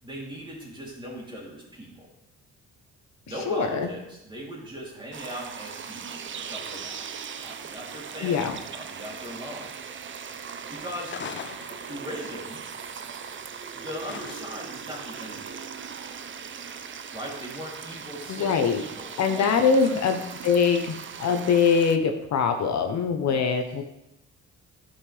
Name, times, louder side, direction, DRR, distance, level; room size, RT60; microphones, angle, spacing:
voice 1, 0.0-2.1 3.2-9.8 10.7-11.1 11.8-12.6 13.7-15.5 17.1-20.1 23.2-23.5, equal, 15° right, -4 dB, 3.1 m, -39 dB
voice 2, 3.5-3.9 8.2-8.6 18.3-18.8 19.2-23.8, left 5 dB, 65° left, 6 dB, 0.9 m, -23 dB
sound 1, 5.1-22.0, right 6 dB, 40° right, 0.6 m, -39 dB
sound 2, 11.1-12.3 14.0-14.8, left 7 dB, 40° left, 0.5 m, -39 dB
11.5 x 5.5 x 3.3 m, 0.86 s
cardioid pair, 90°, 30 cm